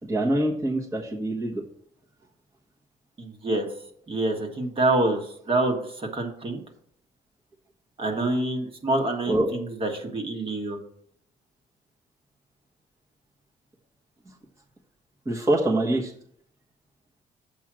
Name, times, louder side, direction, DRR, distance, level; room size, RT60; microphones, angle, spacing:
voice 1, 0.0-1.6 9.3-9.5 15.2-16.1, right 1 dB, 15° right, -3 dB, 1.3 m, -24 dB
voice 2, 3.2-3.7 4.1-6.6 8.0-10.8, right 2 dB, 35° right, 3 dB, 1.6 m, -26 dB
7.6 x 5.4 x 6.1 m, 0.67 s
cardioid pair, 110°, 17 cm